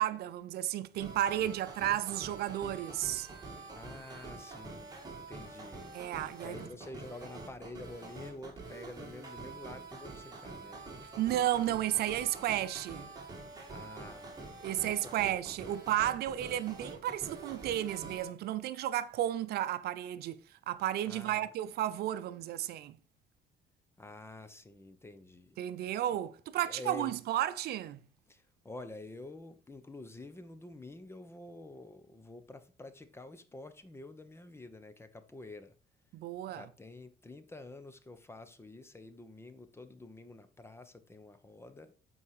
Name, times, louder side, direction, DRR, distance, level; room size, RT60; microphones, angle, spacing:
voice 1, 0.0-3.3 5.9-6.7 11.2-13.1 14.6-20.4 20.7-23.0 25.6-28.0 36.1-36.6, right 12 dB, 70° right, 0.6 m, -33 dB
sound 1, 1.0-18.3, right 3 dB, 25° right, 2.6 m, -46 dB
voice 2, 3.7-4.9 5.3-5.9 6.4-10.8 13.7-14.4 14.8-15.8 21.1-21.5 24.0-25.6 26.6-27.1 28.3-35.7 36.5-41.9, left 2 dB, 15° left, 0.9 m, -48 dB
8.4 x 4.8 x 4.8 m
cardioid pair, 110°, 17 cm